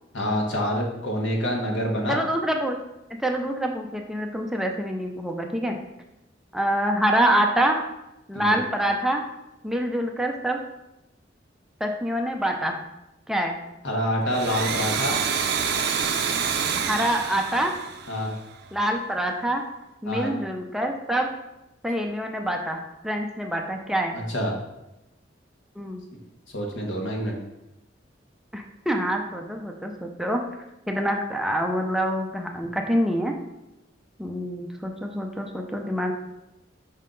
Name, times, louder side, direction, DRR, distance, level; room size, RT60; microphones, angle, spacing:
voice 1, 0.1-2.2 8.3-8.5 13.8-15.2 18.1-18.3 20.1-20.3 24.1-24.5 26.5-27.4, equal, 85° left, 0 dB, 1.4 m, -26 dB
voice 2, 2.1-2.8 3.2-5.8 6.5-7.8 8.3-9.2 9.6-10.6 11.8-12.8 13.3-13.6 16.8-17.7 18.7-19.6 20.0-21.3 21.8-24.2 25.8-26.0 28.5-30.4 30.9-33.4 34.2-36.1, right 1 dB, ahead, 2 dB, 0.5 m, -26 dB
Domestic sounds home sounds, 14.2-18.7, right 6 dB, 60° right, 0.5 m, -27 dB
5.5 x 5.5 x 3.8 m, 0.92 s
head